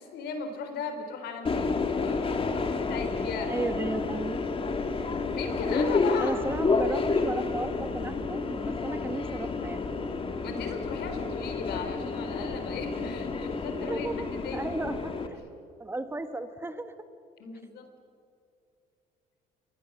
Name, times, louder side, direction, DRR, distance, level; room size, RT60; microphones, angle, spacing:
voice 1, 0.0-3.6 5.0-6.3 10.4-14.7 17.4-17.9, left 5 dB, 75° left, 7 dB, 3.8 m, -38 dB
Subway metro underground, 1.4-15.3, left 4 dB, 30° left, 2.1 m, -30 dB
voice 2, 3.5-4.4 6.2-9.8 13.8-14.3 14.5-15.4 15.8-16.9, right 2 dB, 15° right, 9 dB, 1.3 m, -34 dB
27.5 x 22.5 x 7.3 m, 2.5 s
cardioid pair, 110°, 17 cm